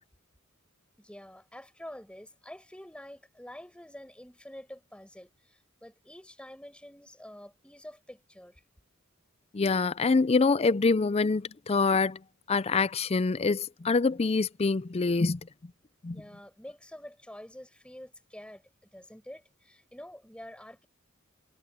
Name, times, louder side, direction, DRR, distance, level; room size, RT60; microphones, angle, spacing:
voice 1, 1.0-8.6 16.1-20.9, left 1 dB, 5° left, 5.3 m, -47 dB
voice 2, 9.5-12.2 12.5-15.4 16.0-16.2, left 4 dB, 30° left, 0.5 m, -25 dB
head